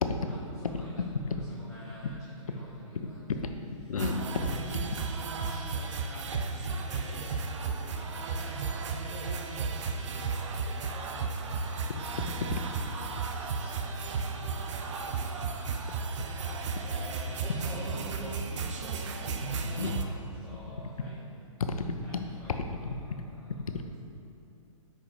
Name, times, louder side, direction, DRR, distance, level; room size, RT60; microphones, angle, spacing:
voice 1, 0.3-3.4 4.3-5.1 5.4-21.4 22.0-23.8, left 1 dB, ahead, 0.9 m, -49 dB
voice 2, 3.0-3.5 3.9-5.0 12.2-12.6 14.6-14.7 19.8-20.0 21.6-23.2 23.5-24.0, left 4 dB, 90° left, 0.6 m, -33 dB
sound 1, 4.0-20.0, right 4 dB, 60° right, 0.6 m, -34 dB
4.8 x 4.7 x 5.3 m
hypercardioid pair, 150°, 18 cm